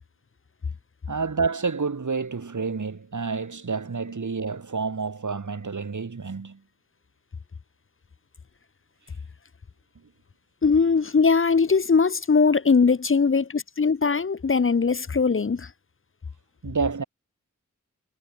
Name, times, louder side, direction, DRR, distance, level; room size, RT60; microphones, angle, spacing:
voice 1, 1.1-6.6 16.6-17.0, right 4 dB, 75° right, 4.8 m, -29 dB
voice 2, 10.6-15.7, left 5 dB, 45° left, 0.8 m, -20 dB
cardioid pair, 45°, 30 cm